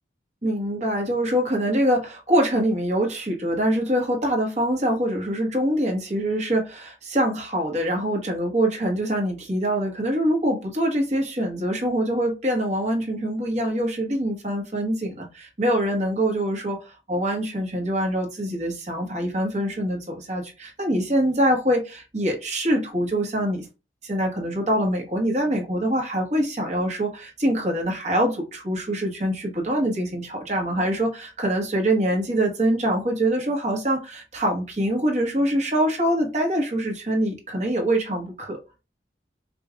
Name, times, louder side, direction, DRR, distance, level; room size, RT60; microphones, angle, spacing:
voice 1, 0.4-23.7 24.0-38.6, right 1 dB, 40° right, 1.3 m, -24 dB
5.2 x 2.6 x 2.4 m
head